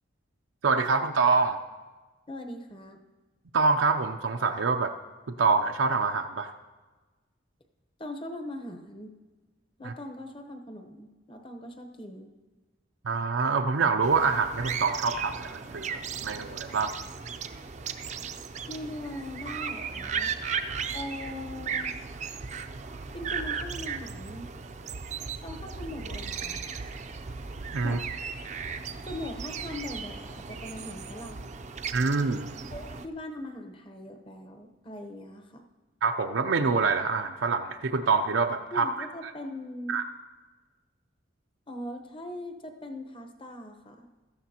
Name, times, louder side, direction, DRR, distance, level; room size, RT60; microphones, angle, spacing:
voice 1, 0.6-1.6 3.5-4.9 5.4-6.5 9.8-9.9 13.0-16.9 27.7-28.0 31.9-32.5 36.0-39.1 39.9-40.0, right 4 dB, 85° right, 4 dB, 0.6 m, -26 dB
voice 2, 2.3-3.0 8.0-9.1 9.8-12.3 18.7-20.3 20.9-21.9 23.1-24.5 25.4-26.6 27.8-28.1 29.1-31.5 32.7-35.7 38.7-40.0 41.7-44.1, left 1 dB, 25° left, 5 dB, 0.9 m, -40 dB
sound 1, 14.0-33.1, right 6 dB, 35° right, 0.5 m, -36 dB
16.5 x 13.5 x 2.9 m, 1.3 s
head